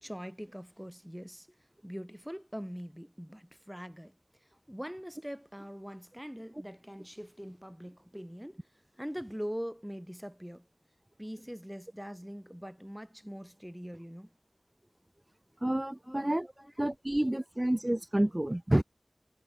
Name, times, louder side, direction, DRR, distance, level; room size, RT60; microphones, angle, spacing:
voice 1, 0.0-4.1 4.4-8.7 8.9-10.7 11.2-14.3 16.0-16.7, equal, 5° right, 2.3 m, -43 dB
voice 2, 15.6-16.5 16.8-18.8, right 1 dB, 30° right, 0.5 m, -29 dB
wide cardioid pair, 40°, 0 cm